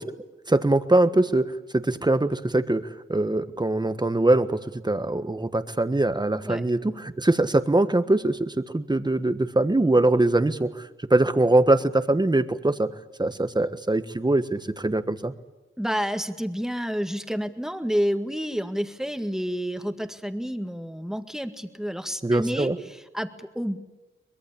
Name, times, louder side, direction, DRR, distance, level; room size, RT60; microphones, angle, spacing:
voice 1, 0.5-4.6 4.8-10.8 11.1-12.9 13.2-15.3 22.2-22.8, right 2 dB, 20° right, 10 dB, 1.4 m, -22 dB
voice 2, 15.8-23.8, equal, ahead, 7 dB, 1.8 m, -29 dB
24.0 x 21.5 x 8.6 m, 1.0 s
wide cardioid pair, 80°, 21 cm